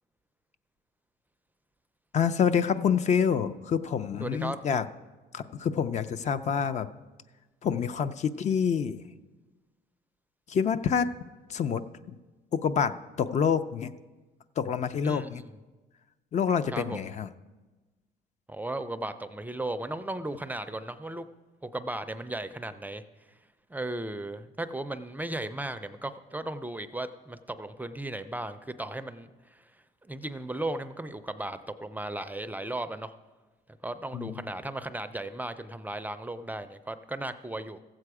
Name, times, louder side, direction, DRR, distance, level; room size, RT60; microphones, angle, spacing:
voice 1, 2.1-4.8 5.3-6.9 7.6-9.0 10.5-11.1 11.5-11.8 12.1-12.2 12.5-13.9 14.6-15.4 16.3-17.3 34.1-34.5, left 7 dB, 45° left, 12 dB, 0.5 m, -27 dB
voice 2, 4.2-4.6 15.0-15.5 16.7-17.1 18.5-21.3 21.6-23.0 23.7-29.7 30.0-33.1 33.8-37.8, right 1 dB, 10° right, 10 dB, 0.4 m, -36 dB
15.0 x 7.7 x 4.8 m, 1.2 s
cardioid pair, 110°, 17 cm